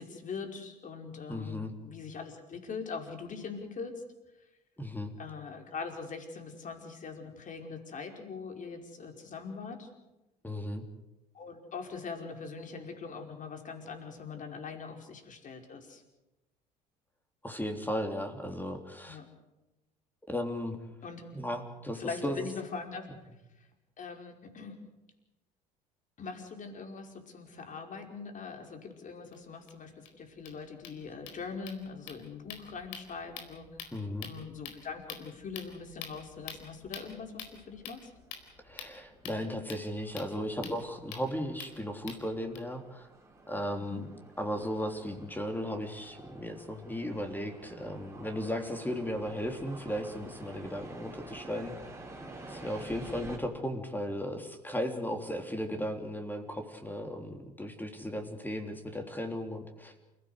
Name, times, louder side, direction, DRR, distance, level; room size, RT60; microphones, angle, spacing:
voice 1, 0.0-4.0 5.2-9.9 11.3-16.0 19.1-19.2 21.0-21.2 22.0-23.1 23.6-23.7 24.0-24.7 26.2-38.1 43.7-44.0, left 5 dB, 40° left, 4 dB, 5.1 m, -42 dB
voice 2, 1.3-1.7 4.8-5.1 10.4-10.8 17.4-19.2 20.3-20.8 21.3-22.4 33.9-34.3 38.6-43.1 43.5-44.1 44.4-51.7 52.5-59.9, equal, 10° left, 5 dB, 3.5 m, -36 dB
sound 1, 29.3-29.4 29.7-29.8 30.0-30.1 30.3-42.6, left 7 dB, 65° left, 4.4 m, -48 dB
sound 2, 35.8-53.4, right 2 dB, 15° right, 4.8 m, -50 dB
28.5 x 16.5 x 8.2 m, 0.98 s
figure-of-eight pair, 65°, 21 cm